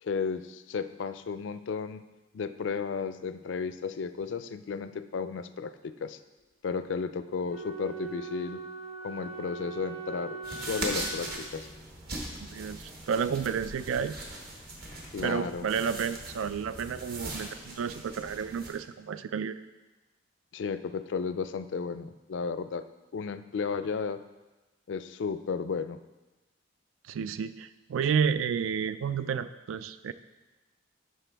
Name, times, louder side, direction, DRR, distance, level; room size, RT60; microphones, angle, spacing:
voice 1, 0.0-2.0 2.3-6.2 6.6-8.6 9.0-11.7 15.1-15.6 20.5-22.8 23.1-24.2 24.9-26.0, left 5 dB, 70° left, 12 dB, 0.4 m, -33 dB
Wind instrument woodwind instrument, 7.4-11.9, right 4 dB, 30° right, 1.0 m, -41 dB
sound 1, 10.4-18.7, right 2 dB, 50° right, 1.2 m, -40 dB
voice 2, 12.5-14.1 15.2-19.6 27.1-30.1, right 7 dB, 90° right, 13 dB, 0.3 m, -31 dB
12.0 x 4.5 x 3.4 m, 1.1 s
head